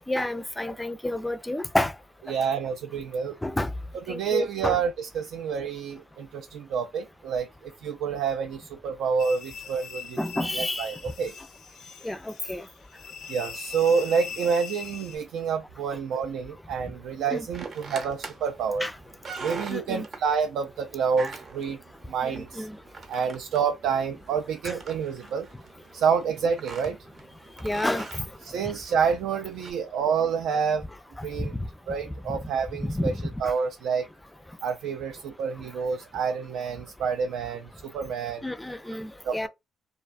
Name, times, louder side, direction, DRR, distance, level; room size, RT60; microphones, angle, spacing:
voice 1, 0.1-1.9 3.4-3.7 4.1-4.8 10.2-10.9 12.0-12.6 17.3-17.5 18.8-18.9 19.7-20.1 22.2-22.7 27.6-28.2 31.4-31.7 32.8-33.5 38.4-39.5, left 1 dB, 10° left, 0.3 m, -29 dB
voice 2, 2.3-3.4 4.1-11.3 13.3-18.9 19.4-21.8 22.1-22.7 23.1-25.5 25.9-27.0 28.4-30.8 31.2-31.5 31.9-33.1 33.4-34.1 34.6-38.5 39.2-39.5, right 6 dB, 85° right, 0.3 m, -28 dB
sound 1, 9.2-15.2, left 6 dB, 75° left, 0.5 m, -41 dB
sound 2, 17.5-29.7, right 4 dB, 50° right, 0.7 m, -43 dB
2.4 x 2.2 x 2.4 m
cardioid pair, 90°, 0 cm